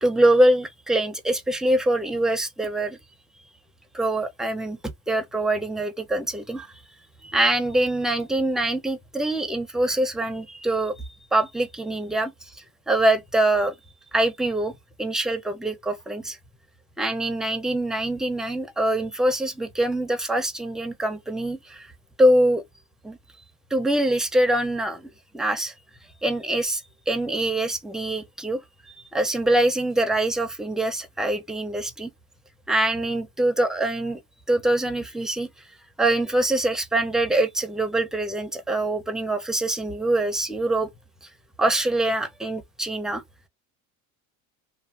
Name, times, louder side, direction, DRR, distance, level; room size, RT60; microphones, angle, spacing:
voice 1, 0.0-3.0 3.9-4.8 5.1-6.7 7.2-10.9 11.3-12.3 12.9-13.7 14.1-14.7 15.0-16.4 17.0-21.9 22.2-22.6 23.0-23.2 23.7-25.7 26.2-28.6 28.9-32.1 32.7-34.2 34.5-35.5 36.0-40.9 41.6-43.2, right 1 dB, ahead, 0.4 m, -24 dB
2.6 x 2.3 x 2.3 m
supercardioid pair, 110°, 43 cm